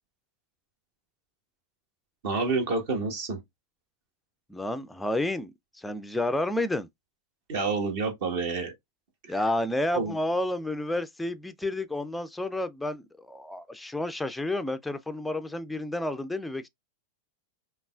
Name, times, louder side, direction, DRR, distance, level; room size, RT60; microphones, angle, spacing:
voice 1, 2.2-3.4 7.5-8.7 9.9-10.1, right 4 dB, 50° right, 1.2 m, -28 dB
voice 2, 4.5-6.9 9.3-16.7, left 1 dB, 5° left, 0.4 m, -30 dB
5.2 x 2.4 x 2.3 m
figure-of-eight pair, 90°, 0 cm